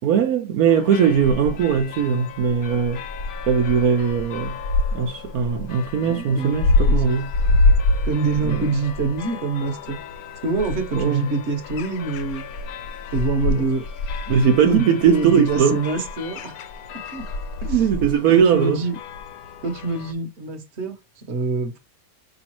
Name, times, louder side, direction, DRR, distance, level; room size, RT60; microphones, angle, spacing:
voice 1, 0.0-3.0 3.5-4.5 4.9-7.3 8.4-8.7 11.0-11.2 14.3-15.8 17.7-18.8, right 7 dB, 75° right, 1.1 m, -19 dB
sound 1, 0.7-20.1, left 2 dB, 80° left, 1.1 m, -27 dB
voice 2, 6.0-6.6 6.9-7.0 8.0-10.0 10.4-12.5 13.1-13.9 14.6-16.6 17.1-17.3 17.6-17.9 18.3-19.0 19.6-21.8, right 3 dB, 50° right, 1.2 m, -25 dB
5.0 x 3.1 x 2.9 m
omnidirectional pair, 1.6 m